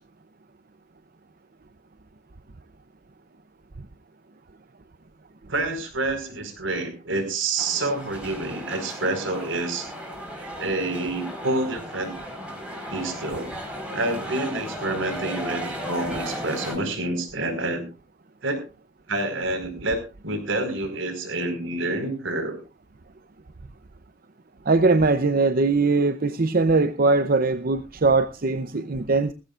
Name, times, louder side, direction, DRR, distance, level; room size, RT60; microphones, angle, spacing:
voice 1, 5.5-9.9 10.6-12.1 12.9-13.5 13.9-17.9 18.4-18.6 19.1-22.6, right 2 dB, 75° right, 4.8 m, -28 dB
sound 1, 7.6-16.8, equal, 5° right, 4.5 m, -35 dB
voice 2, 24.7-29.3, right 3 dB, 45° right, 0.7 m, -21 dB
18.5 x 16.0 x 2.5 m
head